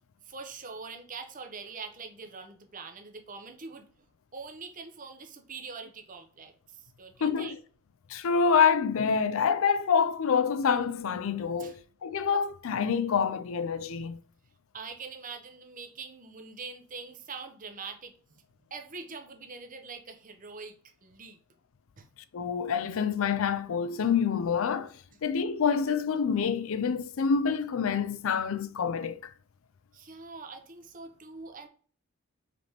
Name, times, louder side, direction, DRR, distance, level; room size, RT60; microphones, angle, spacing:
voice 1, 0.2-3.9 4.3-7.6 11.6-11.8 14.7-18.4 18.7-21.4 22.0-22.1 29.9-31.7, right 4 dB, 35° right, 0.8 m, -43 dB
voice 2, 8.1-14.2 22.3-24.9 25.2-29.2, left 6 dB, 60° left, 0.4 m, -27 dB
5.0 x 3.4 x 2.8 m
head